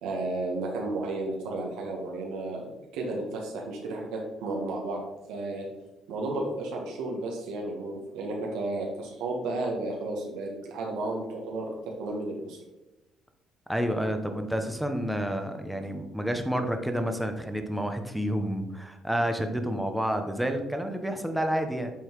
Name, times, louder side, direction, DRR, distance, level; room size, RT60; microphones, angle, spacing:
voice 1, 0.0-5.0 5.3-5.6 6.1-11.7 12.0-12.6, right 2 dB, 85° right, -1 dB, 1.4 m, -33 dB
voice 2, 13.7-21.9, equal, 5° right, 6 dB, 0.9 m, -29 dB
8.2 x 3.9 x 4.6 m, 1.0 s
cardioid pair, 110°, 0 cm